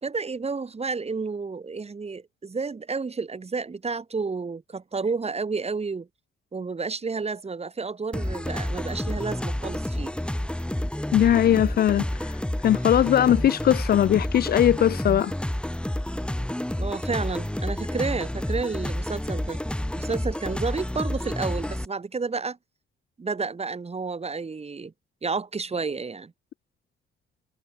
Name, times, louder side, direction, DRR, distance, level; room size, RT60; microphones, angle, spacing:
voice 1, 0.0-6.1 6.5-10.1 16.8-19.6 19.9-22.6 23.2-24.9 25.2-26.3, right 4 dB, 30° right, 3.3 m, -31 dB
sound 1, 8.1-21.9, left 1 dB, 5° left, 2.7 m, -29 dB
voice 2, 11.1-12.0 12.6-15.3, left 11 dB, 50° left, 0.4 m, -20 dB
cardioid pair, 90°, 21 cm